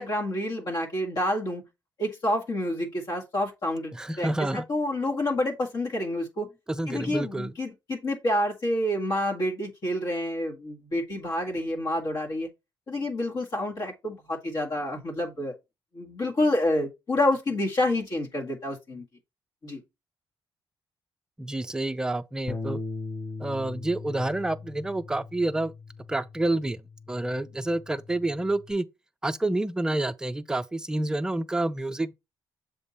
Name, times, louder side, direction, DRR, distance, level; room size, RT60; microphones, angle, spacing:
voice 1, 0.0-1.6 2.0-6.5 6.9-12.5 12.9-15.5 15.9-19.0 19.6-19.8, left 1 dB, 50° left, 1.8 m, -28 dB
voice 2, 3.9-4.6 6.7-7.5 21.4-22.8 23.4-25.7 26.1-26.8 27.1-28.9 29.2-32.1, right 2 dB, 10° right, 0.4 m, -28 dB
Bass guitar, 22.5-28.7, left 3 dB, 25° left, 0.9 m, -40 dB
7.2 x 3.7 x 4.0 m
cardioid pair, 135°, 8 cm